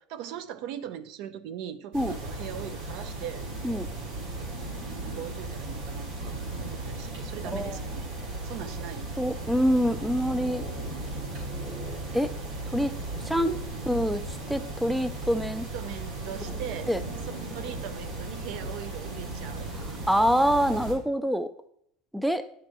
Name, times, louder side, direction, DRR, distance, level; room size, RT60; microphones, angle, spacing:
voice 1, 0.1-3.5 5.0-8.1 8.4-9.1 15.7-16.9 17.4-19.7, right 10 dB, 60° right, 12 dB, 0.6 m, -40 dB
sound 1, 1.9-20.9, right 2 dB, 80° right, 3.8 m, -36 dB
voice 2, 9.2-10.6 12.1-12.3 12.7-12.9 13.3-13.6 13.9-14.2 14.5-15.7 16.9-17.0 20.1-21.5 22.1-22.4, equal, ahead, 11 dB, 0.3 m, -25 dB
10.5 x 6.7 x 3.0 m, 0.71 s
supercardioid pair, 150°, 0 cm